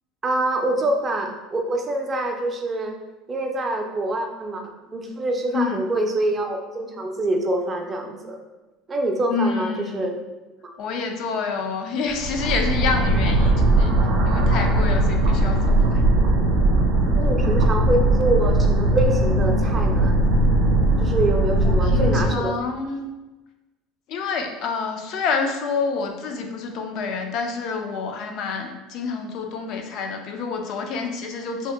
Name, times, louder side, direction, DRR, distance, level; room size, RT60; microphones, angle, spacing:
voice 1, 0.2-3.0 3.3-8.4 8.9-10.1 10.6-10.8 11.3-11.4 17.1-20.2 21.0-22.5, right 2 dB, 25° right, 3 dB, 0.4 m, -25 dB
voice 2, 9.3-10.1 10.8-13.9 14.2-16.0 21.6-23.1 24.1-31.7, left 5 dB, 60° left, 4 dB, 0.4 m, -28 dB
sound 1, 12.1-22.3, right 1 dB, 85° right, 0.5 m, -19 dB
2.7 x 2.1 x 3.4 m, 1.1 s
supercardioid pair, 120°, 0 cm